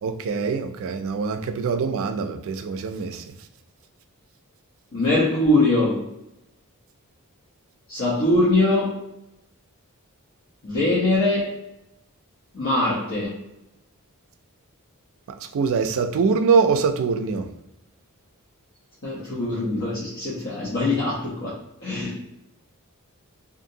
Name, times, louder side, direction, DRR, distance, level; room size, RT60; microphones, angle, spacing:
voice 1, 0.0-3.2 15.5-17.5, right 5 dB, 60° right, 7 dB, 0.3 m, -23 dB
voice 2, 4.9-6.1 7.9-9.0 10.6-11.5 12.5-13.4 19.0-22.2, left 2 dB, 60° left, -9 dB, 0.8 m, -22 dB
2.7 x 2.5 x 2.7 m, 0.88 s
head